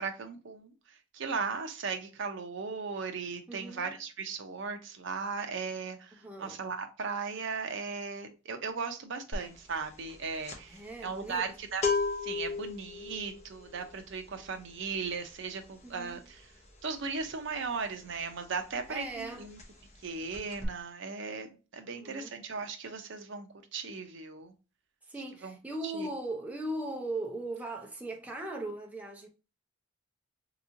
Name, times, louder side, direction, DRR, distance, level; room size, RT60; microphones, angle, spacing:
voice 1, 0.0-11.8 12.2-16.5 16.8-19.6 20.0-24.5 25.4-25.6 25.8-26.1, right 5 dB, 65° right, 0.6 m, -37 dB
voice 2, 3.5-3.9 6.2-6.6 10.7-11.4 15.8-16.2 18.9-19.5 21.9-22.3 25.1-29.3, right 2 dB, 5° right, 0.5 m, -38 dB
sound 1, 9.3-9.6 9.8-18.4 18.7-18.9 19.2-20.0 20.3-20.7, left 4 dB, 35° left, 0.9 m, -36 dB
3.6 x 2.9 x 2.5 m
head